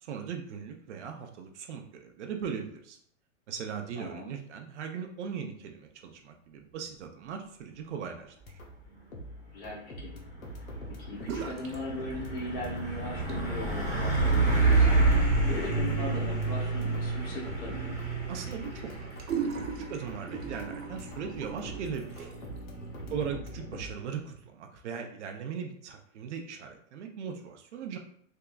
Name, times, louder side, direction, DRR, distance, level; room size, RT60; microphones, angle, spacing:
voice 1, 0.0-3.0 3.5-8.3 18.3-19.2 19.7-22.3 23.1-28.0, right 7 dB, 60° right, 4 dB, 0.6 m, -39 dB
voice 2, 4.0-4.3 9.5-10.1 10.9-18.0 23.1-23.4, left 1 dB, 25° left, -3 dB, 0.9 m, -39 dB
sound 1, 8.4-8.9 9.1-13.0 13.3-14.0 14.3-23.9, equal, 90° left, 1.0 m, -45 dB
Truck, 10.1-24.4, right 3 dB, 5° right, 1.1 m, -29 dB
sound 2, 11.2-11.8 12.1-12.7 13.1-22.6, right 6 dB, 80° right, 0.9 m, -41 dB
3.5 x 2.8 x 2.3 m, 0.65 s
hypercardioid pair, 140°, 40 cm